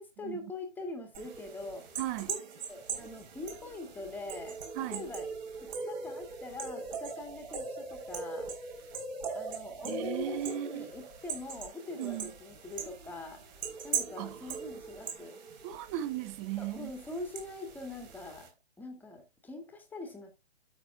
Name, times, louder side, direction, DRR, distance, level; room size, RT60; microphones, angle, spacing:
voice 1, 0.0-1.9 2.3-2.4 2.7-5.3 5.6-8.5 9.3-13.4 13.8-15.4 16.6-18.5 18.8-20.3, left 2 dB, 5° left, 2.0 m, -43 dB
sound 1, 1.1-18.5, right 5 dB, 45° right, 3.8 m, -41 dB
voice 2, 2.0-2.3 4.7-5.1 9.8-10.9 12.0-12.3 14.2-14.6 15.6-16.9, right 13 dB, 15° right, 0.5 m, -37 dB
12.5 x 6.6 x 2.3 m
figure-of-eight pair, 140°, 32 cm